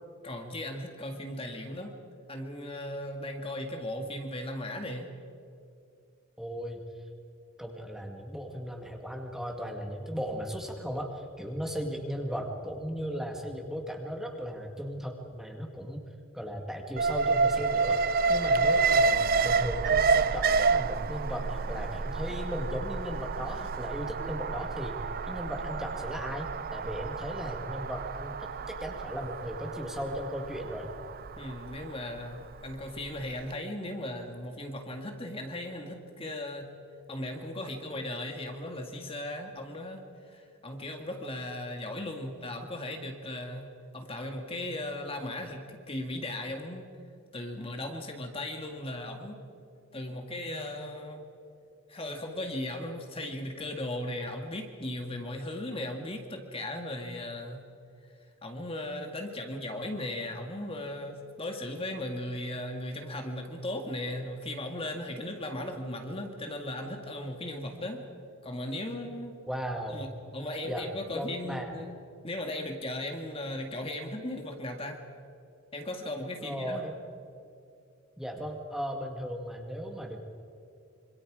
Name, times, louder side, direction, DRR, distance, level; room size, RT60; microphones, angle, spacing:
voice 1, 0.2-1.9 2.3-5.1 31.4-36.7 37.1-43.7 43.9-46.9 47.3-49.4 49.9-51.2 51.9-57.6 58.4-68.0 68.4-69.3 69.9-72.0 72.2-75.0 75.7-77.0, left 1 dB, 25° left, 3 dB, 1.9 m, -37 dB
voice 2, 6.4-6.8 7.6-16.0 16.3-18.0 18.3-25.0 25.2-30.9 69.5-70.0 70.6-70.9 71.1-71.7 76.4-76.9 78.2-80.2, equal, ahead, 2 dB, 1.9 m, -36 dB
Alarm, 17.0-33.1 33.4-33.5, right 4 dB, 45° right, 0.5 m, -29 dB
26.5 x 25.5 x 4.9 m, 2.5 s
head